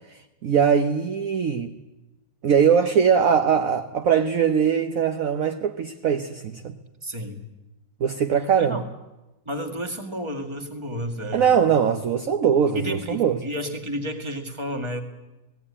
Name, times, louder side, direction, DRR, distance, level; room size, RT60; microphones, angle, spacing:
voice 1, 0.1-1.8 2.4-6.7 8.0-8.8 11.3-13.4, right 7 dB, 55° right, 7 dB, 1.2 m, -21 dB
voice 2, 7.0-7.4 8.6-8.8 9.5-11.6 12.7-15.0, equal, 15° right, 4 dB, 2.0 m, -31 dB
18.0 x 17.0 x 9.8 m, 1.0 s
omnidirectional pair, 2.0 m